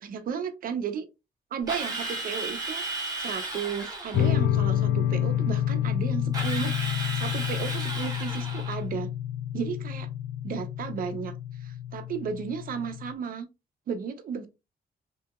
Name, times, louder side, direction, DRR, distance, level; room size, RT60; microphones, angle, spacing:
voice 1, 0.0-1.1 1.5-2.8 3.2-9.1 9.5-10.1 10.4-11.3 11.6-13.5 13.9-14.5, right 6 dB, 60° right, 0.5 m, -34 dB
Drill, 1.7-4.4 6.3-8.8, right 2 dB, 20° right, 0.9 m, -34 dB
sound 1, 4.1-13.1, left 10 dB, 85° left, 0.4 m, -29 dB
2.8 x 2.7 x 2.3 m
wide cardioid pair, 140°, 17 cm